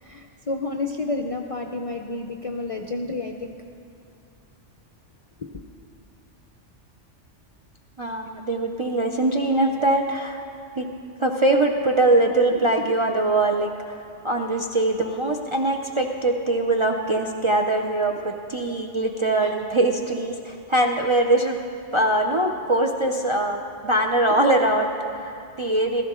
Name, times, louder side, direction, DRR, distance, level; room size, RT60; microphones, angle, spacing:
voice 1, 0.0-3.5 5.4-5.5, left 3 dB, 45° left, 3 dB, 0.4 m, -30 dB
voice 2, 8.0-10.4 10.8-10.9 11.2-14.0 14.2-21.6 21.9-26.0, right 2 dB, 40° right, 1 dB, 0.4 m, -22 dB
16.0 x 13.5 x 3.7 m, 2.5 s
omnidirectional pair, 1.2 m